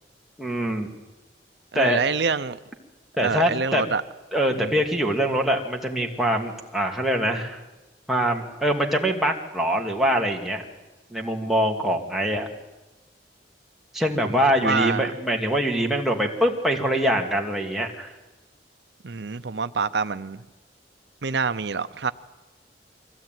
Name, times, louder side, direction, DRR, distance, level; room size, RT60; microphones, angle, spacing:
voice 1, 0.4-0.9 1.7-2.0 3.2-3.8 4.3-7.6 8.1-10.6 11.1-12.5 13.9-18.1, equal, ahead, -1 dB, 2.4 m, -24 dB
voice 2, 1.7-2.6 3.2-4.0 4.6-4.7 14.6-15.1 19.0-20.4 21.2-22.1, right 5 dB, 80° right, 11 dB, 0.7 m, -26 dB
23.5 x 16.0 x 9.2 m, 1.1 s
head